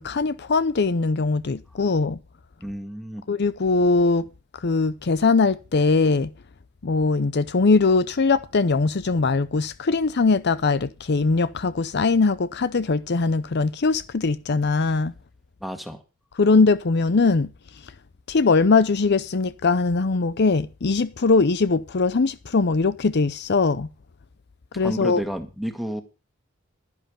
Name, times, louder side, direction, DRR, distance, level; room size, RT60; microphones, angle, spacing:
voice 1, 0.0-2.2 3.3-4.3 4.6-6.3 6.8-15.1 16.4-17.5 18.3-23.9 24.8-25.2, left 4 dB, 55° left, 0.6 m, -21 dB
voice 2, 2.6-3.2 15.6-16.0 24.8-26.0, equal, ahead, 1.8 m, -31 dB
11.5 x 10.5 x 5.2 m
head